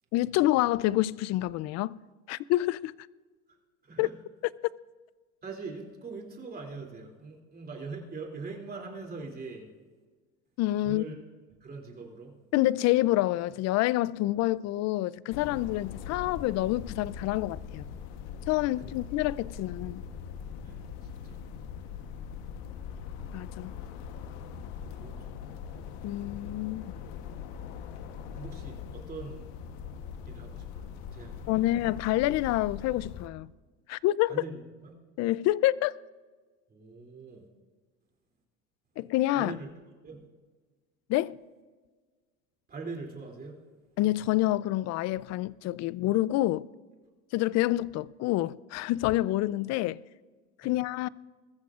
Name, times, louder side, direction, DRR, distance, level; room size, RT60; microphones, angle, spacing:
voice 1, 0.1-2.0 2.3-2.9 4.0-4.1 10.6-11.0 12.5-17.9 18.5-20.0 23.3-23.7 26.0-26.8 31.5-33.5 33.9-34.3 35.2-36.0 39.0-39.6 41.1-41.4 44.0-46.7 47.3-50.0 50.6-51.1, left 16 dB, 55° left, 0.4 m, -27 dB
voice 2, 5.4-9.7 10.8-11.2 11.6-12.4 18.7-18.9 20.6-21.4 24.7-25.3 25.7-25.8 28.4-29.5 30.3-31.8 34.3-34.9 36.7-37.5 39.3-39.7 40.0-40.3 42.7-43.6 50.6-50.8, right 4 dB, 30° right, 2.9 m, -42 dB
sound 1, 15.3-33.3, left 7 dB, 85° left, 1.1 m, -41 dB
21.5 x 14.0 x 2.4 m
cardioid pair, 115°, 31 cm